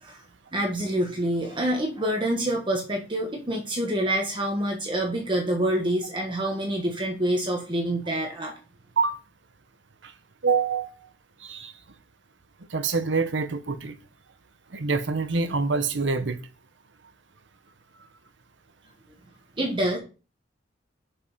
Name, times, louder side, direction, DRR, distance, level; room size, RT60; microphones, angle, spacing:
voice 1, 0.5-8.5 19.6-20.0, right 1 dB, 25° right, 1.4 m, -27 dB
voice 2, 10.4-10.9 11.4-11.7 12.7-13.9 14.7-16.4, right 4 dB, 80° right, 1.0 m, -25 dB
7.0 x 5.4 x 5.5 m
head